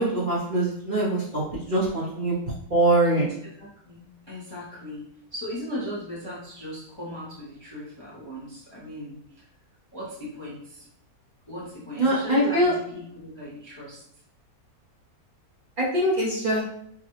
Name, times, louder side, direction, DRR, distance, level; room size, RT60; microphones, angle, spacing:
voice 1, 0.0-2.3 2.7-3.3 12.0-12.7 15.8-16.6, right 1 dB, 40° right, -7 dB, 1.0 m, -23 dB
voice 2, 3.6-9.4 9.9-10.9 11.5-14.0, left 1 dB, 25° left, -7 dB, 0.8 m, -38 dB
4.9 x 2.3 x 3.0 m, 0.69 s
omnidirectional pair, 1.6 m